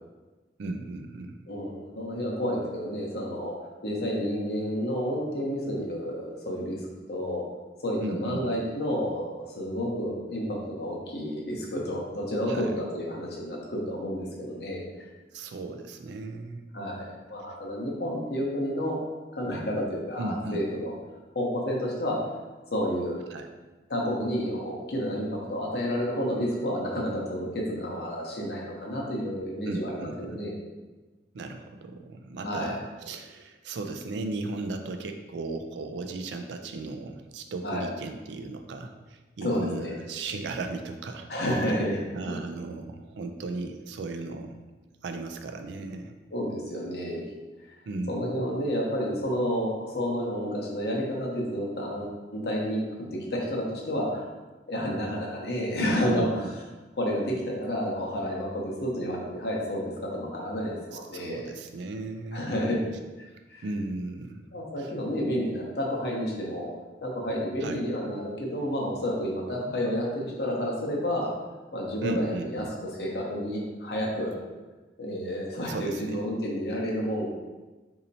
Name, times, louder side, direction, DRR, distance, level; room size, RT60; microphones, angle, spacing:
voice 1, 0.6-1.4 8.0-8.6 12.5-12.7 15.3-16.6 20.2-20.6 23.3-23.5 29.7-30.4 31.3-41.3 42.1-44.6 45.0-46.1 47.9-48.3 55.8-56.5 61.1-62.4 63.6-64.4 64.8-64.9 67.6-67.8 72.0-72.7 75.3-76.1, right 2 dB, 80° right, 6 dB, 0.3 m, -36 dB
voice 2, 1.5-3.6 3.8-6.8 7.1-7.4 7.8-15.1 16.7-19.0 19.3-20.9 21.3-22.2 22.7-23.2 23.9-30.6 32.4-32.8 37.6-37.9 39.4-40.0 41.3-42.0 46.3-47.2 47.6-47.7 48.1-52.8 53.1-54.3 54.7-56.5 57.0-61.4 62.3-62.8 63.2-63.6 64.5-66.7 67.0-71.3 71.7-74.4 75.0-77.3, equal, 65° left, -2 dB, 0.8 m, -30 dB
4.1 x 2.8 x 2.6 m, 1.2 s
head